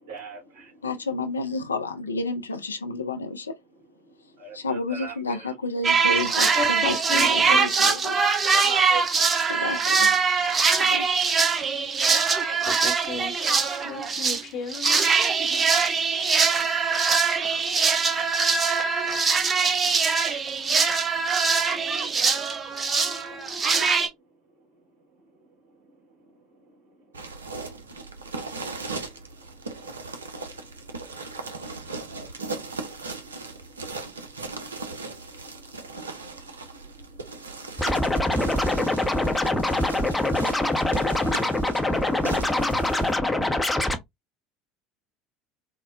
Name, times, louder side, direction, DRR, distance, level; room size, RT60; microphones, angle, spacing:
voice 1, 0.0-0.8 4.4-5.5 8.4-9.5 26.7-26.8 28.0-30.0 30.3-38.4, right 5 dB, 65° right, 1.6 m, -45 dB
voice 2, 0.8-3.6 4.5-8.2 9.5-10.5 10.8-11.1, left 3 dB, 85° left, 0.4 m, -31 dB
sound 1, 5.8-14.4 14.7-24.1, right 5 dB, 25° right, 0.7 m, -22 dB
voice 3, 6.5-7.7 12.6-13.6 13.8-15.0 41.9-42.1, left 4 dB, 50° left, 0.7 m, -34 dB
sound 2, 27.1-43.1, right 3 dB, 80° right, 0.4 m, -38 dB
Scratching (performance technique), 37.8-44.0, left 1 dB, 10° left, 0.6 m, -24 dB
3.7 x 2.0 x 2.2 m
figure-of-eight pair, 70°, 0 cm